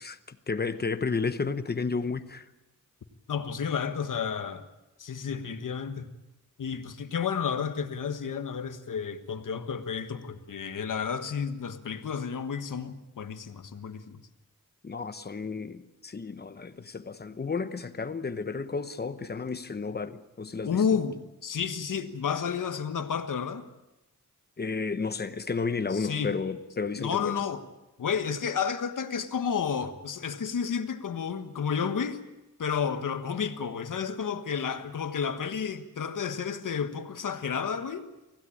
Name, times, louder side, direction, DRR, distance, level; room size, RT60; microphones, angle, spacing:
voice 1, 0.0-2.5 14.8-20.8 24.6-27.4, left 4 dB, 30° left, 1.0 m, -32 dB
voice 2, 3.3-4.7 5.0-6.1 6.6-14.2 20.6-23.7 25.9-26.3 27.0-27.6 28.0-32.2 32.6-38.1, left 6 dB, 80° left, 1.4 m, -31 dB
25.0 x 16.5 x 8.7 m
wide cardioid pair, 160°, 31 cm